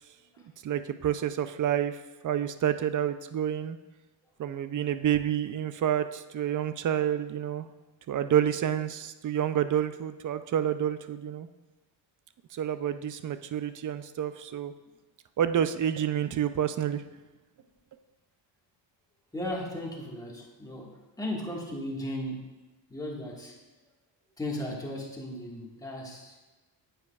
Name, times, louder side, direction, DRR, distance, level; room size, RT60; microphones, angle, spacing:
voice 1, 0.6-2.0 2.2-3.8 4.4-7.7 8.1-11.5 12.5-14.7 15.4-17.0, right 10 dB, 45° right, 11 dB, 0.4 m, -28 dB
voice 2, 19.3-20.9 21.2-22.4 22.9-23.6 24.4-26.4, left 1 dB, 10° left, -3 dB, 1.6 m, -36 dB
9.2 x 7.8 x 2.4 m, 1.1 s
cardioid pair, 100°, 47 cm